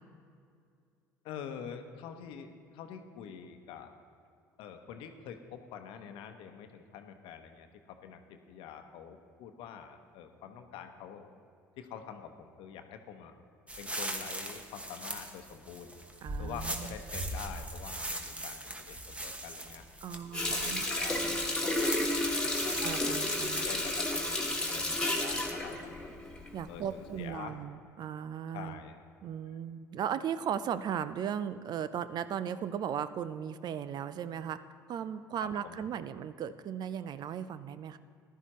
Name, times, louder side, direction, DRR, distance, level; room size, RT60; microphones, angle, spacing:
voice 1, 1.2-3.9 4.6-11.3 11.8-13.3 13.8-15.9 16.4-19.8 20.1-23.2 23.6-25.9 26.7-27.5 28.5-29.0 35.4-35.8, left 8 dB, 65° left, 6 dB, 0.9 m, -46 dB
sound 1, 13.7-23.7, right 1 dB, 15° right, 1.2 m, -40 dB
voice 2, 16.2-16.9 20.0-20.9 22.8-23.7 26.5-28.8 29.2-34.6 34.9-38.0, right 8 dB, 50° right, 14 dB, 0.5 m, -37 dB
Water tap faucet, 20.3-26.7 27.1-27.3, left 1 dB, 10° left, 1.8 m, -32 dB
14.5 x 11.5 x 3.1 m, 2.3 s
hypercardioid pair, 60°, 9 cm